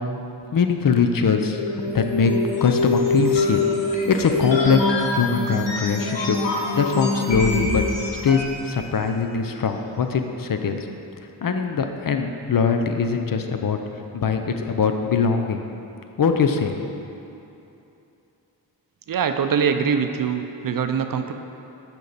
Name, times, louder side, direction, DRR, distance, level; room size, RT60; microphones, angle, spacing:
voice 1, 0.5-1.6 1.9-2.3 2.6-3.6 3.9-4.8 5.1-7.8 8.2-10.8 11.4-13.8 14.1-15.6 16.2-16.9, left 5 dB, 50° left, 6 dB, 0.6 m, -22 dB
sound 1, 1.5-8.7, left 2 dB, 85° left, 1.2 m, -24 dB
voice 2, 19.1-21.3, right 6 dB, 50° right, 7 dB, 0.5 m, -23 dB
8.1 x 4.5 x 4.0 m, 2.8 s
cardioid pair, 45°, 43 cm